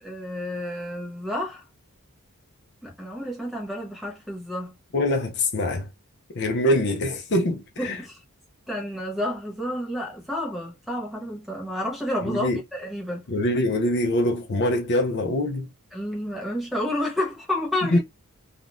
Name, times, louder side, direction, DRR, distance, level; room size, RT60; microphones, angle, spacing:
voice 1, 0.0-1.6 2.8-4.7 7.8-8.2 8.7-13.2 15.9-18.0, left 1 dB, ahead, 1.2 m, -30 dB
voice 2, 4.9-5.9 6.3-8.0 12.2-12.6 13.3-15.7 17.9-18.0, left 1 dB, 50° left, 0.6 m, -24 dB
3.6 x 2.3 x 2.5 m
head